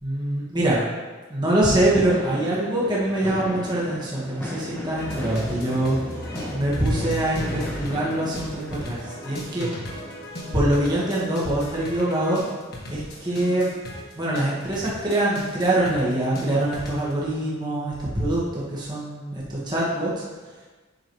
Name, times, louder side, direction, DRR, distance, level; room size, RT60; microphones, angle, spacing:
voice 1, 0.0-0.8 1.3-5.9 6.5-9.7 10.5-12.4 12.9-13.7 14.1-20.1, right 1 dB, 20° right, -7 dB, 1.4 m, -24 dB
sound 1, 2.0-13.4, left 1 dB, 10° left, 1.1 m, -38 dB
sound 2, 5.0-17.1, left 1 dB, 50° left, 1.4 m, -35 dB
7.8 x 6.2 x 3.1 m, 1.3 s
head